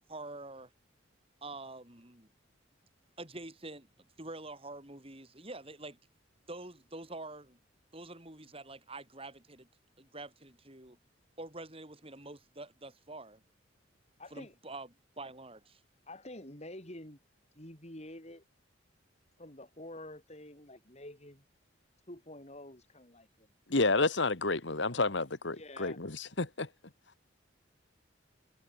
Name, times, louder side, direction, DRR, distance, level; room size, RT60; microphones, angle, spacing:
voice 1, 0.1-0.7 1.4-2.3 3.2-6.0 6.5-7.6 7.9-9.7 10.0-11.0 11.4-13.4 14.3-15.8, right 2 dB, 30° right, 5.5 m, -46 dB
voice 2, 14.2-14.5 16.1-17.2 17.5-18.4 19.4-21.4 22.1-23.5 24.8-25.0 25.5-26.0, left 1 dB, 35° left, 5.2 m, -48 dB
voice 3, 23.7-26.7, left 3 dB, 65° left, 1.8 m, -30 dB
head